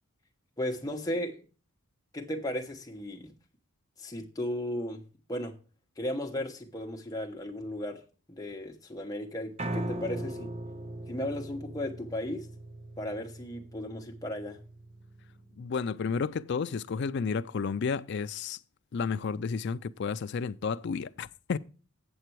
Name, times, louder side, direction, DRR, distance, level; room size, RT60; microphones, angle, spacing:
voice 1, 0.6-1.5 2.1-3.3 4.0-5.6 6.0-8.0 8.3-10.5 11.1-12.5 13.0-14.6, left 1 dB, 15° left, 1.0 m, -35 dB
Piano, 9.6-15.8, right 1 dB, 30° right, 0.6 m, -39 dB
voice 2, 15.6-18.6 18.9-21.6, left 5 dB, 50° left, 0.4 m, -32 dB
8.0 x 7.5 x 4.5 m
head